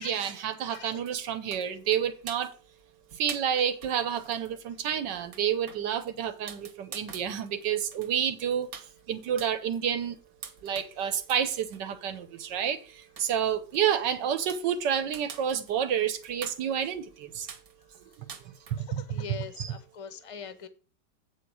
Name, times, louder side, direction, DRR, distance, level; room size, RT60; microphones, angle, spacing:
voice 1, 0.0-2.5 3.2-8.7 9.1-10.1 10.6-12.8 13.2-17.5 18.2-18.3 18.9-19.0 19.6-19.8, right 9 dB, 80° right, 1.6 m, -29 dB
voice 2, 0.7-1.0 18.8-20.7, left 6 dB, 45° left, 0.4 m, -42 dB
sound 1, 0.7-18.9, right 6 dB, 60° right, 1.4 m, -49 dB
8.4 x 4.9 x 6.2 m
omnidirectional pair, 1.9 m